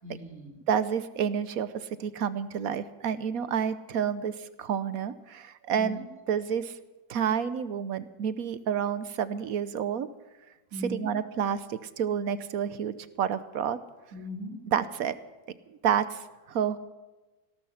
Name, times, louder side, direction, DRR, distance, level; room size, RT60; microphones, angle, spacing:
voice 1, 0.0-0.6 5.7-6.1 10.7-11.1 14.1-14.6, right 1 dB, 50° right, 1 dB, 3.3 m, -38 dB
voice 2, 0.7-6.0 6.3-6.7 7.1-10.1 10.9-13.8 14.7-15.1 15.7-16.8, right 8 dB, 65° right, 14 dB, 1.2 m, -29 dB
17.0 x 13.0 x 5.7 m, 1.2 s
omnidirectional pair, 1.7 m